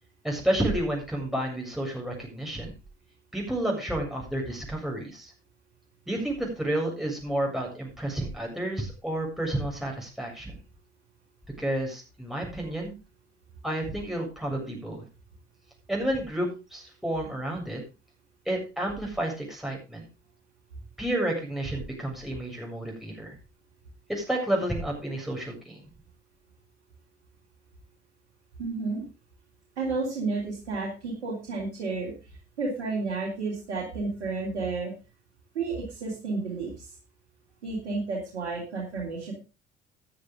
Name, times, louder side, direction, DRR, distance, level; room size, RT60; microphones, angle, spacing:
voice 1, 0.2-2.7 3.3-5.3 6.1-10.5 11.6-12.9 13.6-15.0 15.9-17.8 18.5-20.0 21.0-23.3 24.1-25.8, right 1 dB, ahead, -1 dB, 7.4 m, -30 dB
voice 2, 28.6-29.0 29.8-32.1 32.6-34.9 35.5-36.9 37.6-39.3, right 3 dB, 80° right, -4 dB, 3.5 m, -31 dB
13.5 x 11.0 x 3.8 m, 0.30 s
figure-of-eight pair, 50°, 33 cm